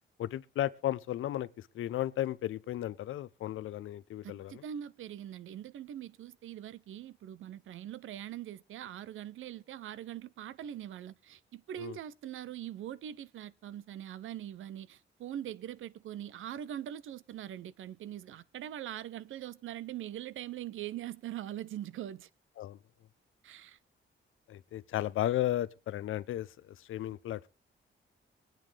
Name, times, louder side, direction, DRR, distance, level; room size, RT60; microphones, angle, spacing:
voice 1, 0.2-4.6 11.8-12.0 22.6-22.8 24.5-27.5, left 13 dB, 85° left, 0.6 m, -34 dB
voice 2, 4.2-22.3 23.4-23.8, right 11 dB, 80° right, 0.6 m, -42 dB
22.5 x 9.2 x 3.3 m
wide cardioid pair, 150°, 20 cm